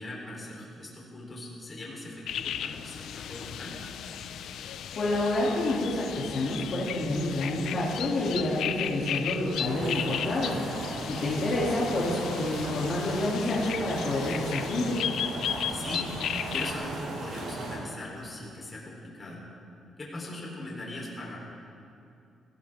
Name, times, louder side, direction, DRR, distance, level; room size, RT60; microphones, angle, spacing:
voice 1, 0.0-3.8 10.9-11.3 15.7-16.1 16.5-19.4 20.0-21.4, left 1 dB, 25° left, -3 dB, 3.8 m, -40 dB
sound 1, 2.3-16.7, left 9 dB, 70° left, 0.6 m, -35 dB
voice 2, 5.0-10.5 11.0-15.1, left 1 dB, 50° left, -6 dB, 2.8 m, -28 dB
sound 2, 9.6-17.8, right 2 dB, 85° right, 4.7 m, -37 dB
21.0 x 18.0 x 3.7 m, 2.6 s
cardioid pair, 155°, 0 cm